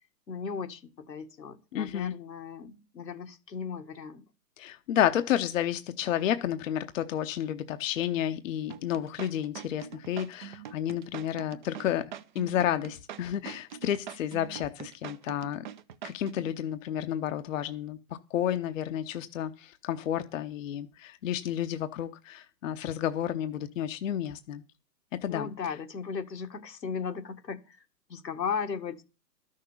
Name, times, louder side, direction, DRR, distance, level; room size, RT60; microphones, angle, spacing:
voice 1, 0.3-4.3 25.3-29.0, left 6 dB, 80° left, 5 dB, 1.8 m, -36 dB
voice 2, 1.7-2.1 4.6-15.7 16.0-18.0 18.3-24.6 25.2-25.5, left 10 dB, 50° left, 9 dB, 0.9 m, -31 dB
sound 1, 8.7-16.5, right 9 dB, 30° right, 0.5 m, -43 dB
12.5 x 6.6 x 7.0 m, 0.32 s
hypercardioid pair, 130°, 50 cm